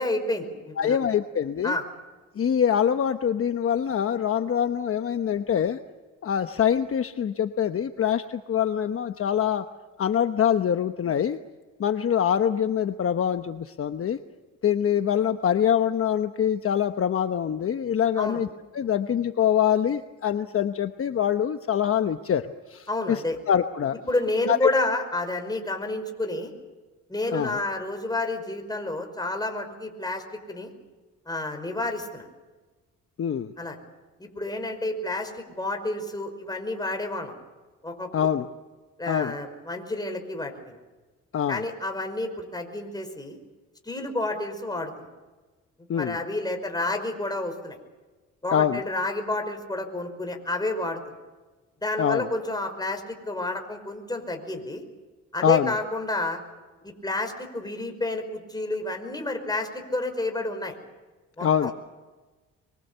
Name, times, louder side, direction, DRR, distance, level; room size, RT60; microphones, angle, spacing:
voice 1, 0.0-1.0 1.6-1.8 18.2-18.4 22.9-23.4 24.1-26.5 27.1-30.7 31.3-32.2 33.6-33.8 34.2-37.4 37.8-38.1 39.0-40.8 41.5-43.4 43.9-45.1 46.0-47.8 48.4-51.0 51.8-54.8 55.3-56.4 56.8-60.7 61.4-61.7, left 2 dB, 15° left, 4 dB, 5.3 m, -30 dB
voice 2, 0.8-1.8 2.4-5.8 6.2-9.7 10.0-11.4 11.8-14.2 14.6-18.5 18.7-24.0 24.5-24.7 27.3-27.6 33.2-33.5 38.1-38.5 39.1-39.4 41.3-41.7 45.9-46.2 48.5-48.8 52.0-52.3 55.4-55.8 61.4-61.7, left 9 dB, 45° left, 8 dB, 1.0 m, -24 dB
25.0 x 24.0 x 6.9 m, 1.3 s
cardioid pair, 90°, 30 cm